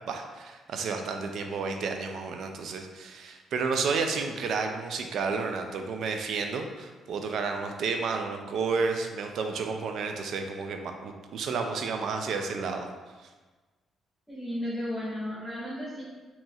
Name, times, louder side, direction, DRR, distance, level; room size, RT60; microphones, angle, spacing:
voice 1, 0.1-12.9, right 4 dB, 70° right, 4 dB, 0.4 m, -31 dB
voice 2, 14.3-16.0, left 1 dB, 10° left, -12 dB, 1.5 m, -34 dB
4.1 x 2.9 x 2.3 m, 1.3 s
cardioid pair, 90°, 0 cm